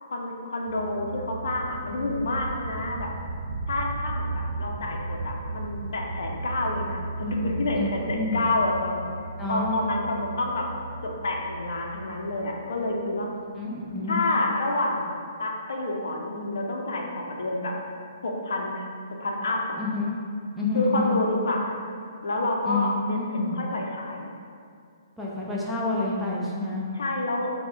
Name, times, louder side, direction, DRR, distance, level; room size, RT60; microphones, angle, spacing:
voice 1, 0.0-3.1 3.7-7.8 8.1-9.0 9.5-10.7 11.0-13.3 14.1-17.7 18.2-18.9 19.2-19.8 20.7-21.8 22.2-24.3 26.9-27.5, left 2 dB, 70° left, 0 dB, 0.5 m, -28 dB
sound 1, 0.7-13.1, right 2 dB, 65° right, 0.4 m, -35 dB
voice 2, 7.7-8.4 9.4-9.8 13.6-14.2 19.8-20.1 20.5-21.2 22.6-23.6 25.2-26.9, left 3 dB, 5° right, -7 dB, 0.7 m, -28 dB
5.7 x 2.1 x 3.2 m, 2.3 s
figure-of-eight pair, 130°, 2 cm